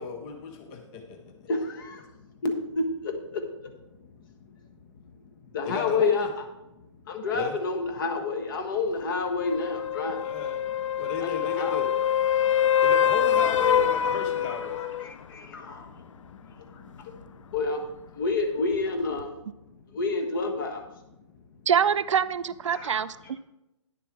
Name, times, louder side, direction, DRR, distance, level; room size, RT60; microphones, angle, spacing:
voice 1, 0.0-1.5 5.6-6.3 7.3-7.6 10.2-10.6 11.0-11.9 12.8-14.8, left 4 dB, 20° left, 4 dB, 0.6 m, -34 dB
voice 2, 1.3-2.1 2.4-3.7 4.0-4.6 4.9-5.2 5.5-6.3 7.1-10.2 11.2-12.0 12.4-12.5 14.4-19.5 19.9-21.0 22.7-23.1, left 3 dB, 40° left, 5 dB, 1.4 m, -30 dB
sound 1, 9.4-15.1 19.2-19.3, left 9 dB, 75° left, 0.5 m, -25 dB
voice 3, 21.7-23.4, right 8 dB, 70° right, 15 dB, 0.4 m, -25 dB
9.9 x 6.9 x 4.6 m, 0.95 s
hypercardioid pair, 155°, 16 cm